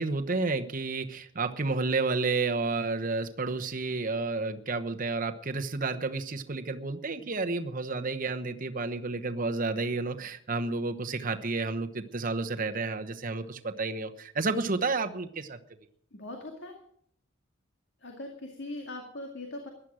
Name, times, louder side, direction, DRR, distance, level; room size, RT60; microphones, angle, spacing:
voice 1, 0.0-15.6, right 3 dB, 40° right, 7 dB, 1.0 m, -31 dB
voice 2, 16.1-16.7 18.0-19.7, left 2 dB, 60° left, 2 dB, 2.2 m, -40 dB
15.0 x 11.0 x 6.3 m, 0.65 s
head